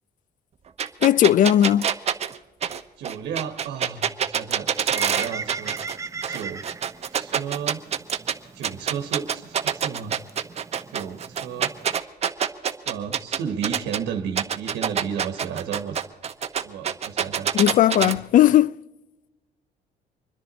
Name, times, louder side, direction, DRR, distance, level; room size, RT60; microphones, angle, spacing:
sound 1, 0.8-6.0 6.2-8.3 8.6-14.0 14.4-18.1, right 8 dB, 40° right, 0.9 m, -25 dB
voice 1, 1.0-1.9 17.5-18.8, left 11 dB, 50° left, 0.4 m, -17 dB
voice 2, 3.0-5.8 6.2-6.6 7.1-7.8 8.5-10.2 10.9-11.7 12.8-16.0 16.6-17.5 17.9-18.2, right 7 dB, 85° right, 1.3 m, -33 dB
Bird, 4.7-12.0, right 4 dB, 20° right, 0.6 m, -38 dB
25.5 x 10.5 x 4.1 m
cardioid pair, 110°, 17 cm